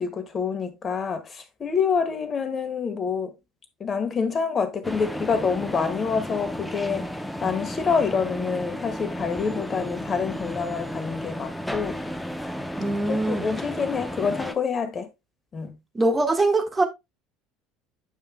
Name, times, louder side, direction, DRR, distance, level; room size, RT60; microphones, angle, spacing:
voice 1, 0.0-3.3 3.8-7.1 7.4-12.0 13.1-15.1 15.5-15.7, left 5 dB, 35° left, 1.6 m, -27 dB
sound 1, 4.8-14.5, equal, 5° left, 0.9 m, -33 dB
voice 2, 12.8-13.5 15.9-16.9, right 2 dB, 20° right, 1.6 m, -22 dB
9.1 x 5.6 x 2.2 m
hypercardioid pair, 65°, 0 cm